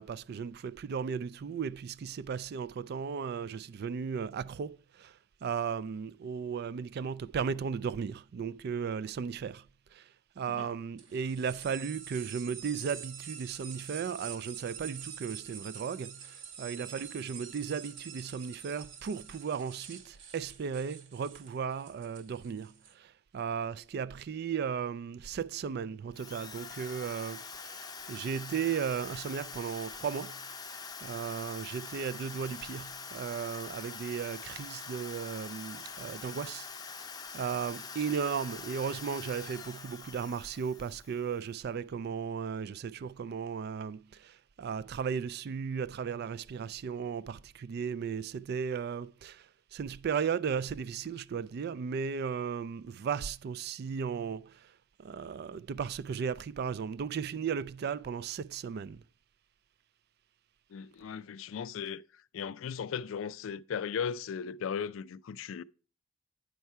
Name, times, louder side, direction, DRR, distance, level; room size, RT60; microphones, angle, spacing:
voice 1, 0.0-9.7 9.9-37.1 37.3-54.7 55.0-59.0, right 6 dB, 55° right, 0.3 m, -36 dB
sound 1, 11.0-22.9, right 7 dB, 70° right, 1.0 m, -46 dB
Drill, 26.1-41.3, left 5 dB, 20° left, 0.6 m, -44 dB
voice 2, 60.7-62.0 62.3-65.6, left 7 dB, 85° left, 0.4 m, -37 dB
9.3 x 4.6 x 5.5 m
head